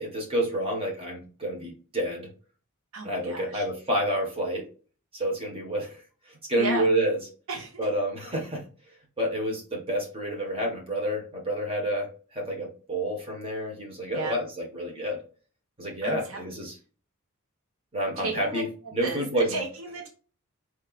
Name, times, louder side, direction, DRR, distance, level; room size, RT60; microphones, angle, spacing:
voice 1, 0.0-2.3 3.0-4.6 5.1-6.0 6.3-7.2 7.8-8.6 9.2-15.2 15.8-16.7 17.9-18.6 18.9-19.6, right 1 dB, 25° right, 0 dB, 1.4 m, -29 dB
voice 2, 2.9-3.6 6.6-6.8 7.5-7.8 14.1-14.4 16.0-16.4 18.2-18.6 19.0-20.1, right 4 dB, 70° right, 1 dB, 1.1 m, -34 dB
4.6 x 4.3 x 2.5 m, 0.38 s
head